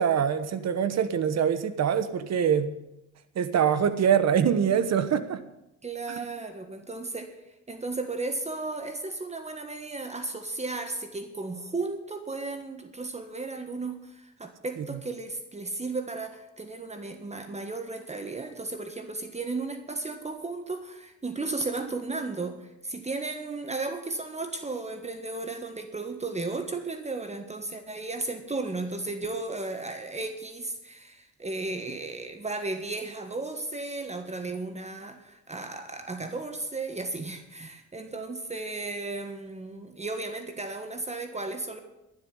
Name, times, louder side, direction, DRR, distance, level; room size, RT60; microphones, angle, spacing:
voice 1, 0.0-2.7 3.3-5.4 14.8-14.9, right 8 dB, 60° right, 11 dB, 1.3 m, -24 dB
voice 2, 5.8-7.4 7.7-41.8, right 3 dB, 20° right, 6 dB, 1.6 m, -34 dB
12.0 x 7.9 x 9.7 m, 0.90 s
cardioid pair, 90°, 30 cm